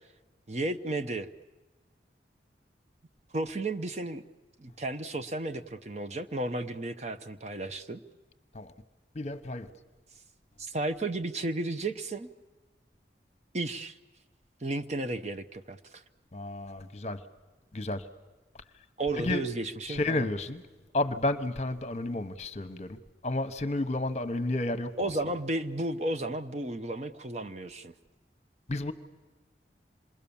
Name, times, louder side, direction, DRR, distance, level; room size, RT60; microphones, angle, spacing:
voice 1, 0.5-1.3 3.3-4.2 4.6-8.0 10.6-12.3 13.5-14.0 14.6-16.0 19.0-20.3 25.0-27.9, right 2 dB, 40° right, 0.8 m, -33 dB
voice 2, 9.1-9.7 16.3-17.2 17.7-18.0 19.1-19.4 19.9-20.6 20.9-25.1 28.7-28.9, left 2 dB, 40° left, 1.0 m, -31 dB
27.0 x 21.5 x 7.2 m
head